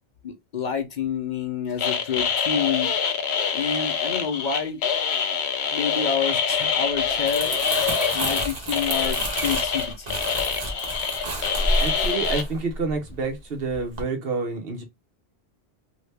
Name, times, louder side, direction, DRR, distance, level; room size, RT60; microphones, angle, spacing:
voice 1, 0.2-2.9 3.5-4.8 5.7-7.6 8.1-10.2, left 7 dB, 50° left, 0.7 m, -28 dB
sound 1, 1.8-12.4, left 6 dB, 80° left, 0.9 m, -25 dB
sound 2, 6.0-6.9 7.2-7.3 7.7-11.3 11.6-11.7, left 1 dB, 5° right, 0.3 m, -43 dB
Crumpling crinkling, 7.0-13.4 13.7-14.0, right 1 dB, 40° right, 1.1 m, -30 dB
voice 2, 11.8-14.8, right 4 dB, 65° right, 1.1 m, -28 dB
2.8 x 2.7 x 3.3 m
omnidirectional pair, 1.1 m